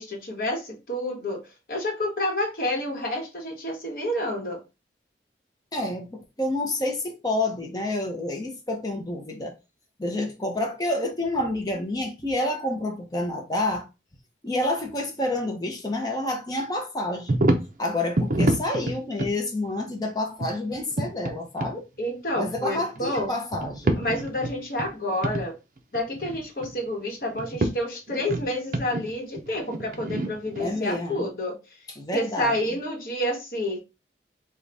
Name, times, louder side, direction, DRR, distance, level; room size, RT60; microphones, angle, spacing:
voice 1, 0.0-1.4 1.7-4.6 22.0-23.3 24.0-25.6 25.9-31.6 32.1-33.8, left 1 dB, 50° left, 1.1 m, -29 dB
voice 2, 5.7-9.6 10.0-13.9 14.4-17.4 17.8-21.9 22.3-24.0 30.6-31.3 32.0-32.8, left 1 dB, 20° left, 0.7 m, -29 dB
sound 1, 17.3-17.7 18.2-19.3 20.4-21.3 21.6-21.7 22.5-23.3 23.5-24.9 25.2-25.4 25.8-26.8 27.3-27.7 28.1-30.7, right 1 dB, 45° right, 0.5 m, -27 dB
3.9 x 2.3 x 3.3 m
head